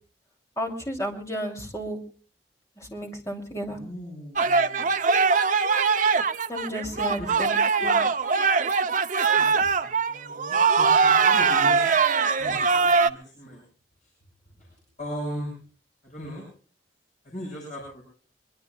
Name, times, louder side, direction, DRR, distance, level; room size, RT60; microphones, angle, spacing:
voice 1, 0.6-2.0 2.8-3.8 6.5-8.0, equal, 15° left, 2 dB, 2.9 m, -33 dB
voice 2, 3.7-4.9 7.2-7.3 9.3-12.0 12.3-13.6 14.0-14.1 14.6-15.5 16.0-16.4 17.2-18.0, equal, 40° left, -2 dB, 6.2 m, -39 dB
sound 1, 4.4-13.1, right 5 dB, 45° right, 0.6 m, -22 dB
23.5 x 22.5 x 2.3 m, 0.40 s
head